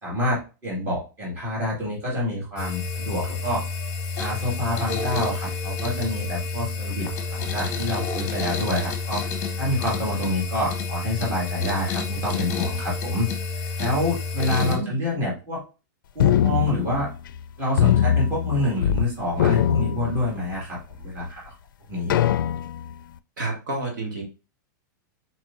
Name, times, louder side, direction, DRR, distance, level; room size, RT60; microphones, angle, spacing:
voice 1, 0.0-3.7 4.2-9.3 9.6-13.3 13.8-15.6 16.1-17.1 17.6-21.5 21.9-22.2, left 1 dB, 20° right, -6 dB, 2.0 m, -27 dB
sound 1, 2.6-14.8, left 4 dB, 25° left, 1.0 m, -29 dB
voice 2, 14.6-14.9 23.4-24.2, right 3 dB, 65° right, 0 dB, 1.8 m, -29 dB
sound 2, 16.2-17.4 17.8-19.1 19.3-20.6 21.2-21.3 22.1-22.9, left 9 dB, 80° left, 0.4 m, -22 dB
4.4 x 4.2 x 2.5 m, 0.31 s
supercardioid pair, 175°, 11 cm